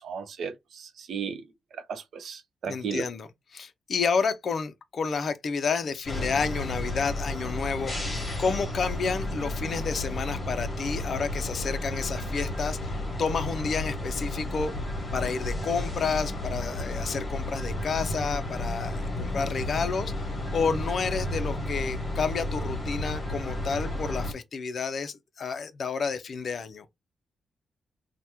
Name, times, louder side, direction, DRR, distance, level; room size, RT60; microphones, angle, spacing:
voice 1, 0.0-1.4 1.9-3.1, right 6 dB, 65° right, 0.5 m, -35 dB
voice 2, 2.7-8.0 8.4-14.7 15.1-26.9, left 5 dB, 45° left, 0.4 m, -30 dB
sound 1, 6.1-24.3, left 1 dB, 25° left, 1.1 m, -32 dB
2.8 x 2.1 x 3.4 m
wide cardioid pair, 155°, 0 cm